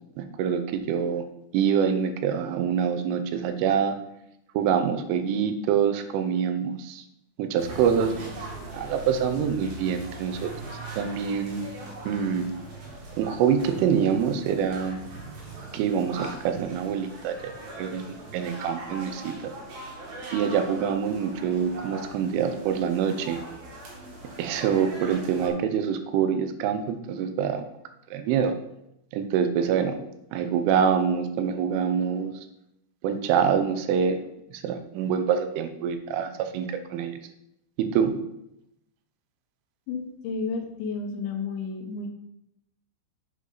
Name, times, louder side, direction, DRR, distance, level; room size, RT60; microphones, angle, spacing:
voice 1, 0.2-1.2 1.5-4.0 4.5-7.0 7.4-8.1 8.7-10.5 11.0-11.6 12.1-12.5 13.2-15.0 15.7-17.5 17.8-18.0 18.3-19.3 20.3-23.4 24.4-27.6 28.1-28.5 29.1-30.0 30.3-32.3 33.0-34.2 34.5-37.2 37.8-38.2, right 7 dB, 85° right, 7 dB, 3.3 m, -25 dB
sound 1, 7.6-25.5, right 2 dB, 55° right, 3.5 m, -40 dB
voice 2, 39.9-42.1, left 4 dB, 75° left, 3 dB, 3.2 m, -32 dB
9.7 x 7.2 x 3.9 m, 0.82 s
omnidirectional pair, 5.7 m